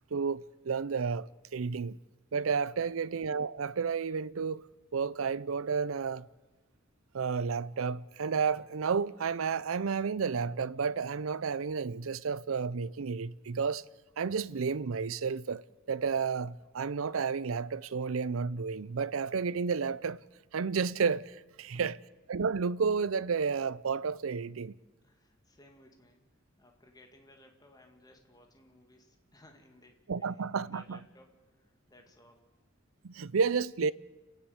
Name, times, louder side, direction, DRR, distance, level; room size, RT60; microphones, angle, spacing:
voice 1, 0.1-2.0 2.3-4.6 4.9-6.3 7.1-13.8 14.2-20.2 20.5-22.0 22.3-24.7 30.1-31.0 33.0-33.9, right 5 dB, 85° right, 0.5 m, -31 dB
voice 2, 21.6-22.0 25.0-26.2 26.6-32.5, left 1 dB, 20° left, 2.2 m, -60 dB
30.0 x 10.0 x 8.5 m
head